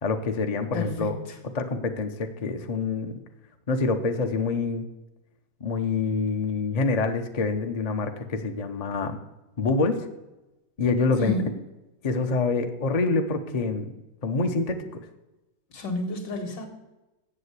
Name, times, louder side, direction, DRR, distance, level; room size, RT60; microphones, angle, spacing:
voice 1, 0.0-1.1 1.5-3.2 3.7-4.9 5.6-9.2 9.6-10.1 10.8-11.3 12.0-13.9 14.2-15.0, left 3 dB, 45° left, 6 dB, 0.5 m, -26 dB
voice 2, 0.7-1.4 11.2-11.5 15.7-16.7, left 1 dB, 70° left, 3 dB, 2.4 m, -31 dB
7.6 x 7.6 x 8.1 m, 1.0 s
omnidirectional pair, 2.1 m